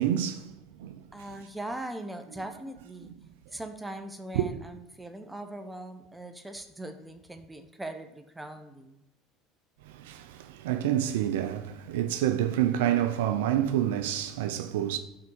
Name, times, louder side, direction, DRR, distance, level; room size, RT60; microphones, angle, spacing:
voice 1, 0.0-1.0 3.0-3.1 4.3-4.4 9.8-15.0, right 11 dB, 80° right, 0.5 m, -28 dB
voice 2, 1.1-3.1 3.5-9.0, right 1 dB, 10° right, 0.9 m, -40 dB
5.9 x 4.6 x 6.2 m
hypercardioid pair, 80°, 0 cm